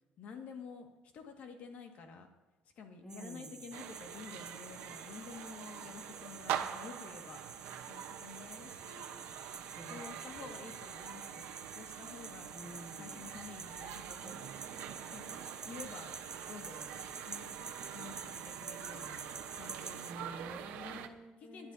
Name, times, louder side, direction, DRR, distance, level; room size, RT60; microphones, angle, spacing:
voice 1, 0.2-0.9 1.1-2.3 2.8-9.1 9.9-12.5 13.0-14.5 15.1-16.1 16.5-16.9 17.3-19.2 19.5-21.0 21.4-21.7, left 5 dB, 50° left, 3 dB, 1.9 m, -50 dB
voice 2, 3.0-3.7 9.6-10.8 12.5-13.3 20.1-21.7, equal, 10° left, 3 dB, 1.7 m, -50 dB
sound 1, 3.1-20.1, right 4 dB, 20° right, 0.6 m, -49 dB
sound 2, 3.7-21.1, right 10 dB, 90° right, 1.0 m, -45 dB
19.5 x 12.0 x 2.8 m, 1.1 s
cardioid pair, 160°, 3 cm